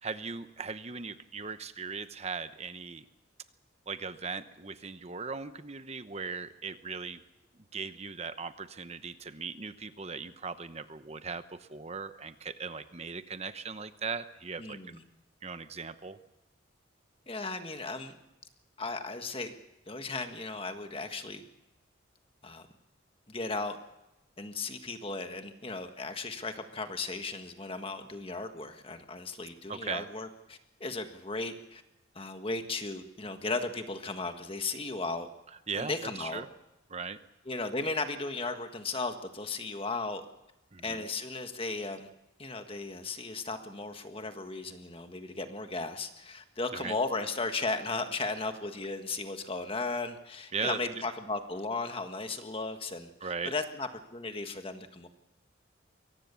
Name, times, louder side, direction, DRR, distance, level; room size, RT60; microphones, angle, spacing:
voice 1, 0.0-3.0 3.9-7.2 7.7-15.0 15.4-16.2 29.7-30.1 35.7-36.5 36.9-37.2 40.7-41.0 46.7-46.9 50.5-51.0 53.2-53.5, right 5 dB, 35° right, 11 dB, 0.9 m, -38 dB
voice 2, 14.6-15.0 17.3-18.2 18.8-19.5 19.9-21.4 22.4-22.7 23.3-23.8 24.4-31.8 32.1-35.3 35.7-36.4 37.4-40.2 40.8-42.1 42.4-55.1, left 3 dB, 30° left, 7 dB, 1.6 m, -36 dB
23.0 x 18.0 x 7.1 m, 0.93 s
head